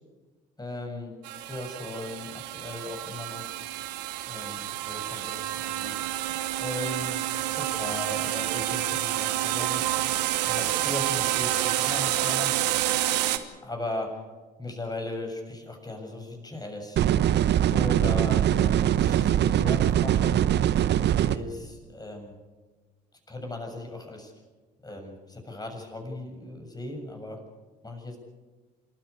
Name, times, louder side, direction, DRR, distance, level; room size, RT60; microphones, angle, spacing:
voice 1, 0.6-1.2 1.5-3.5 4.3-5.9 6.6-7.2 7.5-9.8 10.5-12.5 13.6-14.2 14.6-17.0 17.7-20.4 21.2-22.4 23.3-24.3 24.8-27.4 27.8-28.2, left 2 dB, 20° left, 3 dB, 7.0 m, -37 dB
sound 1, 1.2-13.4, right 15 dB, 85° right, 1.1 m, -29 dB
sound 2, 17.0-21.4, right 11 dB, 55° right, 1.0 m, -22 dB
27.5 x 13.5 x 8.3 m, 1.3 s
hypercardioid pair, 55°, 21 cm